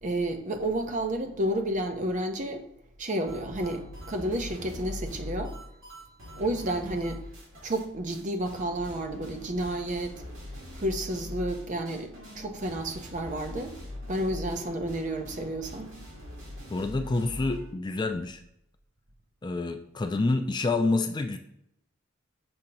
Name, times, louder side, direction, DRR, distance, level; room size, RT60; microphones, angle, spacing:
voice 1, 0.0-2.6 3.0-5.5 6.4-7.2 7.6-10.1 10.8-13.7 14.1-15.9, right 1 dB, 40° right, 0.7 m, -31 dB
sound 1, 3.3-7.8 8.1-8.2 8.5-17.7, left 1 dB, 80° right, 2.4 m, -42 dB
voice 2, 16.7-18.4 19.4-21.4, left 3 dB, 20° left, 0.3 m, -28 dB
7.0 x 2.8 x 5.2 m
head